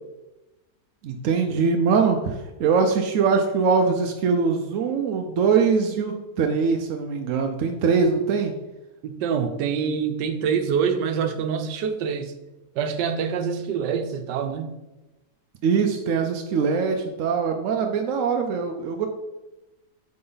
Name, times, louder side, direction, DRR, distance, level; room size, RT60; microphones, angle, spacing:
voice 1, 1.0-8.5 15.6-19.1, right 5 dB, 65° right, 4 dB, 0.8 m, -22 dB
voice 2, 9.0-12.3 12.8-14.7, right 6 dB, 90° right, 8 dB, 1.3 m, -25 dB
7.9 x 4.3 x 3.8 m, 1.0 s
omnidirectional pair, 1.8 m